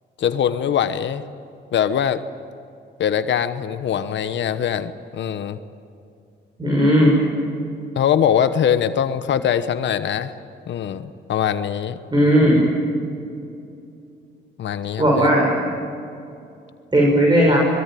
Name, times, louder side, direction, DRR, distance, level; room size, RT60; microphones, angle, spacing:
voice 1, 0.2-1.2 1.7-2.2 3.0-5.6 7.9-10.3 10.7-12.0 14.6-15.3, left 9 dB, 65° left, 11 dB, 1.2 m, -22 dB
voice 2, 6.6-7.1 12.1-12.6 15.0-15.6 16.9-17.6, equal, 20° right, -2 dB, 6.7 m, -15 dB
25.5 x 22.5 x 9.3 m, 2.6 s
cardioid pair, 90°, 20 cm